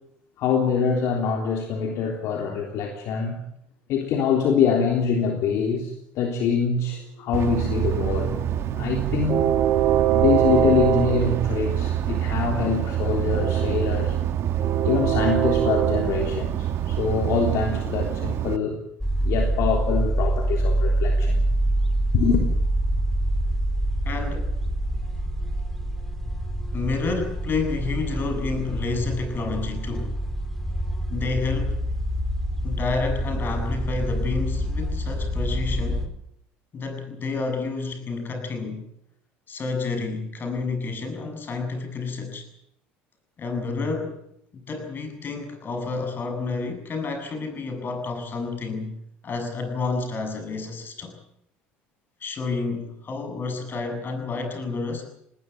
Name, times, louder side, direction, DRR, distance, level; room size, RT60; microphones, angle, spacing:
voice 1, 0.4-3.4 3.9-8.3 8.8-9.5 10.1-14.2 14.8-18.8 19.2-21.4 22.1-22.4, left 6 dB, 65° left, 2 dB, 3.5 m, -24 dB
Train, 7.3-18.6, right 10 dB, 55° right, 1.9 m, -24 dB
sound 1, 19.0-36.1, right 1 dB, 5° left, 4.8 m, -26 dB
voice 2, 24.0-24.6 26.7-30.2 31.1-31.8 32.6-36.1 36.7-38.9 39.5-42.5 43.4-44.2 44.5-49.0 49.2-51.2 52.2-55.0, left 4 dB, 40° left, 6 dB, 7.7 m, -29 dB
20.0 x 19.5 x 9.3 m, 0.75 s
hypercardioid pair, 80°, 5 cm